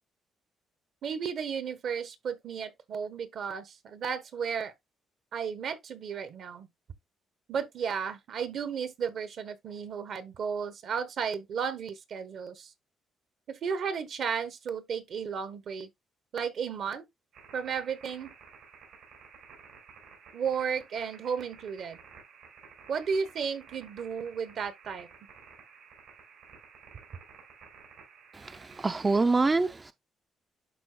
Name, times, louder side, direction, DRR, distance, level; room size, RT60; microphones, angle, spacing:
voice 1, 1.0-4.7 5.3-6.7 7.5-12.7 13.5-15.9 16.3-17.0 17.5-18.3 20.3-22.0 22.9-25.1, right 6 dB, 65° right, 1.1 m, -34 dB
sound 1, 17.3-29.2, right 6 dB, 85° right, 4.7 m, -53 dB
voice 2, 28.3-29.9, right 3 dB, 25° right, 0.4 m, -26 dB
11.5 x 3.9 x 2.2 m
cardioid pair, 90°, 0 cm